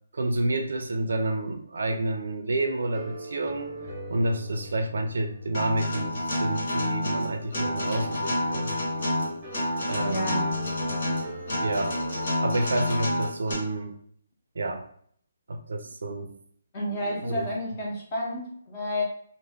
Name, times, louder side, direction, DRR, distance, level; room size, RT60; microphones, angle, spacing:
voice 1, 0.1-3.7 4.1-8.7 9.9-10.5 11.6-12.0 12.4-14.0 14.6-14.8 15.5-16.3 17.0-17.5, right 2 dB, 75° right, 5 dB, 0.4 m, -29 dB
sound 1, 2.6-12.2, equal, 10° right, 0.8 m, -42 dB
Acoustic guitar, 5.5-13.5, left 1 dB, 45° left, 0.9 m, -28 dB
voice 2, 10.1-10.5 16.7-19.0, left 1 dB, 20° left, -3 dB, 0.6 m, -30 dB
2.2 x 2.0 x 3.4 m, 0.64 s
hypercardioid pair, 175°, 0 cm